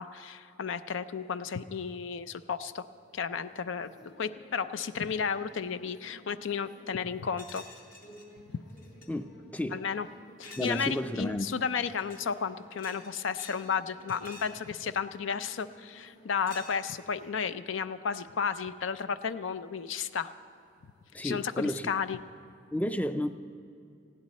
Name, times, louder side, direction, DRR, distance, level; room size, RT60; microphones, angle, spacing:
voice 1, 0.0-2.8 3.1-3.9 4.2-7.6 8.5-8.6 9.7-10.1 10.4-20.3 21.2-22.2, left 6 dB, 85° left, 13 dB, 0.5 m, -33 dB
sound 1, 2.8-21.2, equal, 70° left, 2.0 m, -57 dB
sound 2, 7.4-8.3 8.7-9.1 10.4-11.0 11.9-12.3 12.7-13.7 14.0-14.6 15.6-15.9 16.5-17.1, left 2 dB, 45° left, 2.2 m, -49 dB
voice 2, 9.1-9.8 10.6-11.5 21.1-21.9 22.7-23.3, left 1 dB, 10° left, 9 dB, 0.4 m, -32 dB
19.5 x 15.5 x 4.2 m, 2.5 s
head